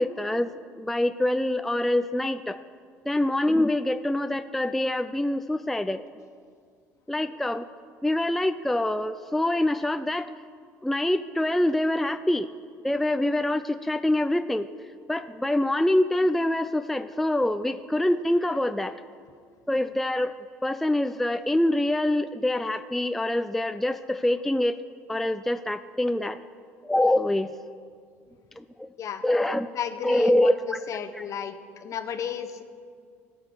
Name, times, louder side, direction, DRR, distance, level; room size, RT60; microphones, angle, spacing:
voice 1, 0.0-2.6 3.1-6.0 7.1-7.7 8.0-10.3 10.8-12.5 12.8-14.7 15.1-18.9 19.7-20.3 20.6-24.8 25.1-26.4 26.8-27.5 28.6-28.9 29.2-29.7 30.0-30.8 31.2-31.3, left 1 dB, 5° left, 10 dB, 0.4 m, -25 dB
voice 2, 29.7-31.5 31.8-32.6, left 8 dB, 50° left, 9 dB, 0.9 m, -33 dB
17.5 x 6.2 x 4.7 m, 2.1 s
hypercardioid pair, 65°, 7 cm